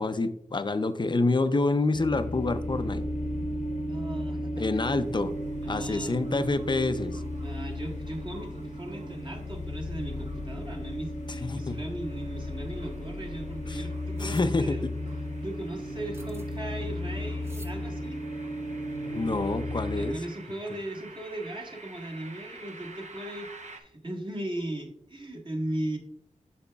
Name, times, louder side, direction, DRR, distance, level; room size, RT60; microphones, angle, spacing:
voice 1, 0.0-3.0 4.6-5.3 5.7-7.2 11.4-11.8 13.7-13.8 14.2-14.8 19.0-20.2, left 3 dB, 35° left, 11 dB, 0.5 m, -27 dB
sound 1, 1.9-20.1, left 1 dB, 75° left, 1.0 m, -34 dB
voice 2, 3.9-5.0 5.6-6.2 7.4-14.9 15.4-18.2 19.9-26.0, right 1 dB, 40° right, -1 dB, 1.4 m, -37 dB
sound 2, 4.9-23.8, right 3 dB, 70° right, 0.8 m, -52 dB
sound 3, 14.1-14.5 16.1-16.6 17.4-17.8, right 1 dB, 20° right, 0.6 m, -50 dB
8.2 x 5.7 x 2.3 m, 0.74 s
wide cardioid pair, 75°, 13 cm